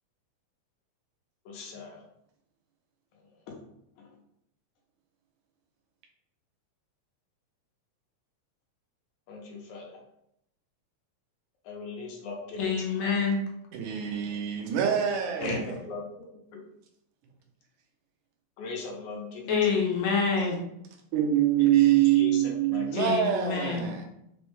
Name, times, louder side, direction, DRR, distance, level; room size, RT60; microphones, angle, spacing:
voice 1, 1.5-2.1 3.2-3.6 4.0-4.2 9.3-10.0 11.6-13.0 15.4-16.3 16.5-16.6 18.6-20.0 21.6-21.7 22.1-23.3, left 4 dB, 90° left, 2.1 m, -40 dB
voice 2, 12.6-13.4 15.4-15.6 19.5-20.6 22.9-23.9, left 5 dB, 75° left, 1.7 m, -27 dB
voice 3, 13.7-15.7 21.1-24.1, right 11 dB, 85° right, 2.1 m, -25 dB
5.3 x 2.1 x 3.1 m
omnidirectional pair, 3.4 m